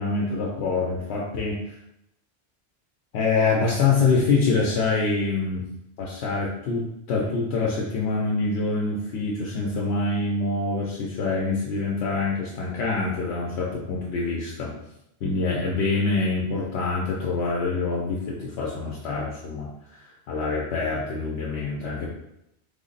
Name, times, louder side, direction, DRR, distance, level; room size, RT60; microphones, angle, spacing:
voice 1, 0.0-1.8 3.1-5.6 6.0-14.7 15.2-22.1, left 3 dB, 80° left, -3 dB, 0.9 m, -25 dB
3.4 x 2.0 x 3.8 m, 0.83 s
omnidirectional pair, 1.1 m